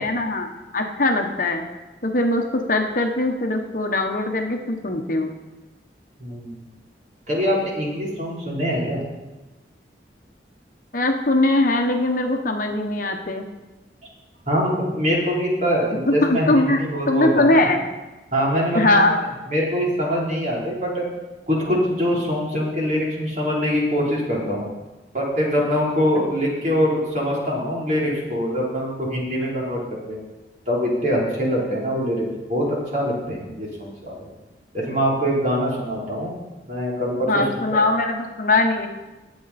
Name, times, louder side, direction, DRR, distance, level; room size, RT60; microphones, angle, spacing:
voice 1, 0.0-1.6 2.0-5.3 10.9-13.5 16.1-16.8 17.1-17.8 18.7-19.2 37.3-38.9, left 2 dB, 50° left, 4 dB, 1.1 m, -21 dB
voice 2, 6.2-6.6 7.3-9.0 14.5-17.7 18.3-18.9 19.5-21.1 21.5-24.7 25.1-30.2 30.7-34.3 34.7-36.3 36.7-37.4 37.7-37.8, equal, 45° right, -4 dB, 3.7 m, -23 dB
19.5 x 7.9 x 4.2 m, 1.1 s
head